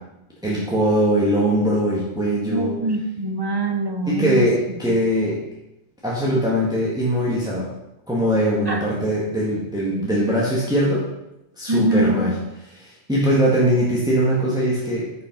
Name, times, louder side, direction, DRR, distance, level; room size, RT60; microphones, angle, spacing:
voice 1, 0.4-2.7 4.1-5.4 6.0-7.7 8.1-11.0 11.6-12.3 12.7-15.1, equal, 5° right, -6 dB, 1.8 m, -21 dB
voice 2, 2.5-4.5 4.9-5.0 8.7-8.8 11.7-12.2, right 2 dB, 25° right, 5 dB, 0.8 m, -23 dB
9.9 x 5.6 x 5.3 m, 0.90 s
omnidirectional pair, 1.3 m